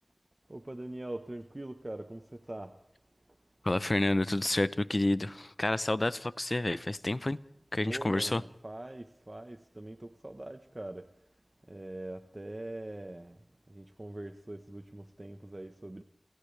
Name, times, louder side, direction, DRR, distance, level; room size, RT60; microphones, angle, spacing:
voice 1, 0.5-2.7 7.8-11.0 11.7-13.4 13.7-16.0, right 1 dB, 40° right, 1.3 m, -42 dB
voice 2, 3.6-7.4 7.7-8.4, left 1 dB, 45° left, 0.8 m, -29 dB
29.5 x 28.0 x 3.5 m
wide cardioid pair, 40°, 0 cm